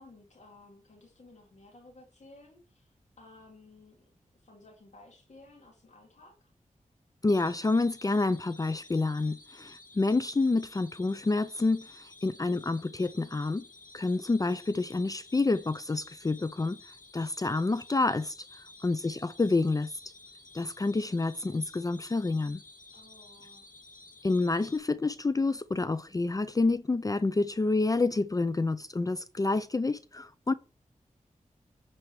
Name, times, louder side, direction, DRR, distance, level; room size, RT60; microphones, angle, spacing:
voice 1, 0.0-6.5 18.8-19.2 22.9-23.7, left 2 dB, 60° left, 2.5 m, -56 dB
voice 2, 7.2-13.6 13.9-16.8 17.1-19.9 20.5-22.6 24.2-30.5, left 3 dB, 25° left, 0.5 m, -28 dB
sound 1, 7.3-24.8, left 2 dB, 85° left, 1.0 m, -53 dB
10.5 x 4.3 x 4.8 m
cardioid pair, 60°, 13 cm